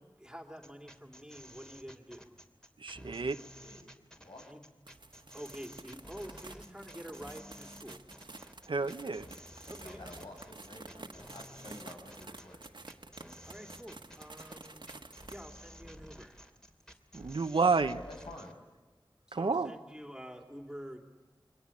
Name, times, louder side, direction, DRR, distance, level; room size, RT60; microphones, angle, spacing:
voice 1, 0.0-2.3 4.5-4.6 5.3-8.0 9.7-10.0 13.5-16.4 16.9-17.0 19.3-21.0, equal, 10° right, 3 dB, 2.9 m, -48 dB
sound 1, 0.6-18.5, equal, 10° left, 2.8 m, -53 dB
voice 2, 2.8-3.4 8.7-9.3 17.1-18.0 19.3-19.7, right 4 dB, 85° right, 8 dB, 1.0 m, -30 dB
voice 3, 3.6-4.4 8.7-13.0 17.8-18.5, left 1 dB, 70° left, 2 dB, 6.2 m, -51 dB
sound 2, 4.9-15.4, right 3 dB, 65° right, 1.6 m, -51 dB
28.5 x 24.0 x 8.6 m, 1.3 s
wide cardioid pair, 60°, 8 cm